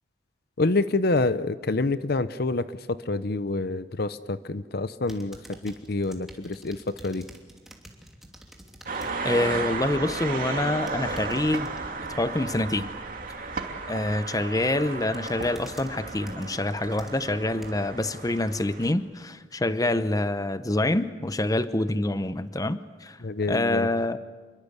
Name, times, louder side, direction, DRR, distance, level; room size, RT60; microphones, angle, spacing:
voice 1, 0.6-7.3 23.2-23.9, left 2 dB, 55° left, 13 dB, 0.8 m, -27 dB
sound 1, 5.1-9.2 9.5-9.9 10.7-11.7 14.1-14.4 14.8-18.0 18.5-18.6, equal, ahead, 2.9 m, -49 dB
sound 2, 8.9-18.9, right 3 dB, 50° right, 2.7 m, -34 dB
voice 2, 9.2-11.7 12.2-12.9 13.4-13.5 13.9-23.2 23.5-24.2, left 1 dB, 20° left, 12 dB, 0.9 m, -26 dB
28.0 x 22.5 x 8.2 m, 1.4 s
head